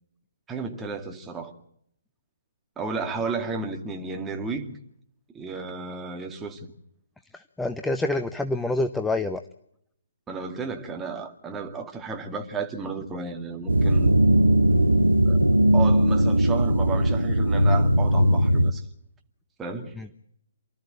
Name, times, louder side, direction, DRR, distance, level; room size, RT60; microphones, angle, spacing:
voice 1, 0.5-1.5 2.8-4.8 5.3-6.7 10.3-14.2 15.3-15.4 15.7-18.9 19.6-19.9, right 4 dB, 10° right, 2.3 m, -33 dB
voice 2, 7.3-9.4 20.0-20.1, left 2 dB, 5° left, 0.8 m, -27 dB
sound 1, 13.7-18.7, right 1 dB, 85° right, 1.0 m, -19 dB
28.5 x 13.5 x 8.8 m
figure-of-eight pair, 130°, 0 cm